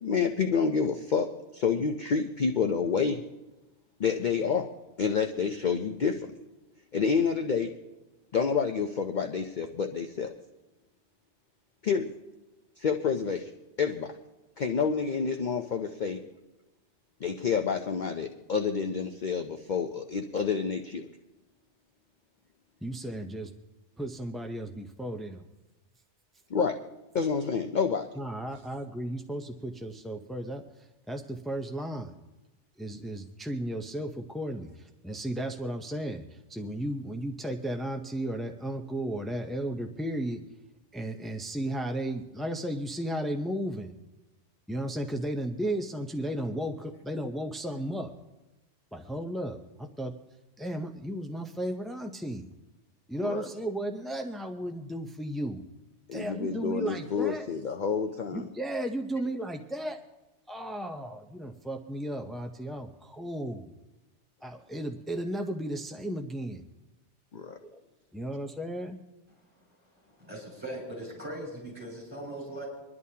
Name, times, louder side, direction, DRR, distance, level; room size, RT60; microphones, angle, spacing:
voice 1, 0.0-3.2 4.0-4.7 5.0-6.3 6.9-7.7 8.3-10.3 11.8-12.1 12.8-13.5 13.8-14.1 14.6-16.2 17.2-21.1 26.5-26.8 27.1-28.1 53.2-53.5 56.1-58.5 67.3-67.6, left 6 dB, 50° left, 5 dB, 0.7 m, -28 dB
voice 2, 22.8-23.5 24.0-25.5 28.2-30.6 31.1-32.2 32.8-40.4 40.9-43.9 44.7-48.1 48.9-50.1 50.6-52.5 53.1-55.6 56.1-57.5 58.3-60.0 60.5-63.7 64.4-66.6 67.6-67.8 68.1-69.0, right 1 dB, ahead, 3 dB, 0.3 m, -34 dB
voice 3, 69.7-72.7, right 1 dB, 20° right, -3 dB, 6.3 m, -40 dB
25.5 x 11.0 x 2.8 m, 1.1 s
omnidirectional pair, 1.2 m